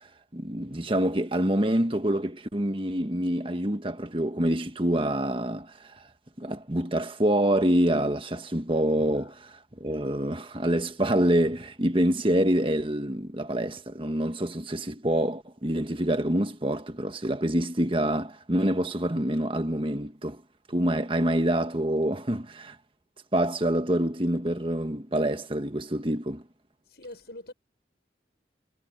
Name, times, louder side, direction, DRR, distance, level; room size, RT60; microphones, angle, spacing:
voice 1, 0.3-6.0 6.4-20.4 20.7-22.7 23.3-26.4, right 1 dB, 30° right, 1.5 m, -26 dB
voice 2, 26.8-27.5, left 1 dB, 65° left, 7.4 m, -44 dB
head